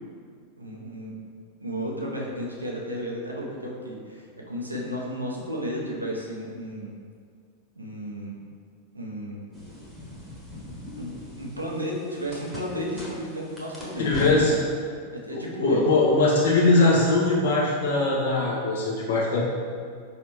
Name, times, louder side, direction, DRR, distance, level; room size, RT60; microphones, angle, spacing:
voice 1, 0.6-1.2 1.6-6.9 7.8-8.4 8.9-9.5 11.0-14.6 15.1-15.9, equal, 85° right, -2 dB, 0.7 m, -33 dB
sound 1, 9.5-14.6, left 1 dB, 5° right, 1.1 m, -39 dB
voice 2, 14.0-14.5 15.3-19.4, left 2 dB, 60° left, -5 dB, 1.0 m, -21 dB
5.2 x 3.2 x 3.0 m, 2.1 s
figure-of-eight pair, 90°, 0 cm